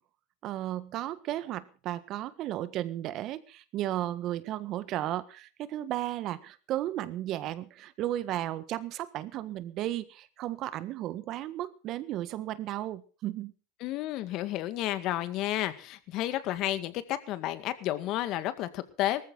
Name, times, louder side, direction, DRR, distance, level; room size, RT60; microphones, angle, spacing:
voice 1, 0.4-13.5, right 13 dB, 50° right, 14 dB, 1.6 m, -34 dB
voice 2, 13.8-19.2, left 14 dB, 50° left, 11 dB, 2.0 m, -31 dB
19.0 x 14.5 x 4.0 m, 0.37 s
supercardioid pair, 110°, 0 cm